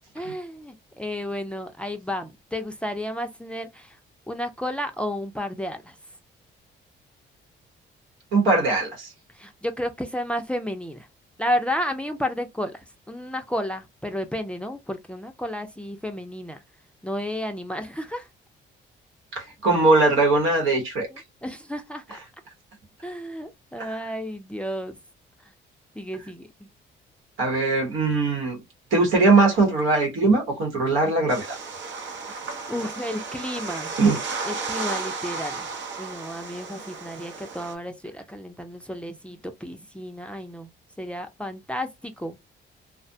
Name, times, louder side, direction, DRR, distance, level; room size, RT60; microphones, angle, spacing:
voice 1, 0.1-4.0 4.3-6.0 9.3-11.1 11.4-16.6 17.0-18.3 21.1-22.0 23.0-25.0 26.0-26.7 32.7-33.9 34.4-35.7 36.0-40.7 41.0-42.4, left 1 dB, 5° left, 0.4 m, -32 dB
voice 2, 8.3-9.1 19.3-21.1 23.8-23.9 27.4-28.6 28.9-31.6 34.0-34.2, right 3 dB, 85° right, 1.1 m, -20 dB
sound 1, 31.3-37.7, right 4 dB, 70° right, 0.7 m, -34 dB
2.4 x 2.2 x 2.6 m
cardioid pair, 90°, 20 cm